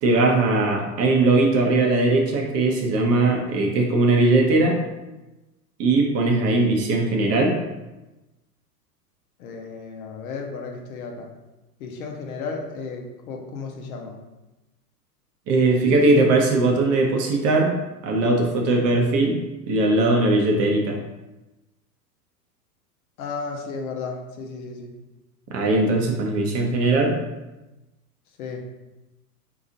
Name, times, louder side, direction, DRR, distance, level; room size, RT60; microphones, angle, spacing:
voice 1, 0.0-4.8 5.8-7.6 15.5-17.7 18.0-19.4 19.7-21.0 25.5-27.2, right 2 dB, 30° right, 1 dB, 0.7 m, -20 dB
voice 2, 9.4-11.3 11.8-14.2 23.2-24.9 28.4-28.6, left 4 dB, 65° left, 2 dB, 0.9 m, -34 dB
4.0 x 2.9 x 3.7 m, 1.0 s
hypercardioid pair, 100°, 47 cm